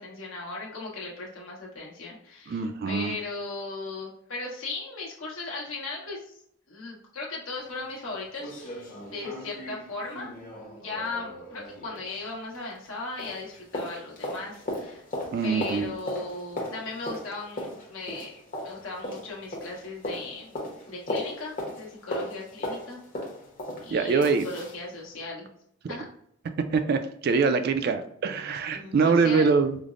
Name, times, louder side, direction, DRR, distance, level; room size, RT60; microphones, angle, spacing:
voice 1, 0.0-6.4 6.7-10.3 10.7-15.0 15.4-20.6 20.9-23.0 23.8-25.5 25.9-26.0 28.7-29.6, left 3 dB, 80° left, -3 dB, 1.1 m, -37 dB
voice 2, 2.5-3.1 15.3-15.9 23.9-24.5 26.5-29.8, right 5 dB, 50° right, 8 dB, 0.3 m, -24 dB
sound 1, 7.5-7.6 7.9-8.0 8.4-12.9 13.2-24.8 25.2-25.3, left 1 dB, 45° left, 0.9 m, -37 dB
5.0 x 2.0 x 2.5 m, 0.68 s
head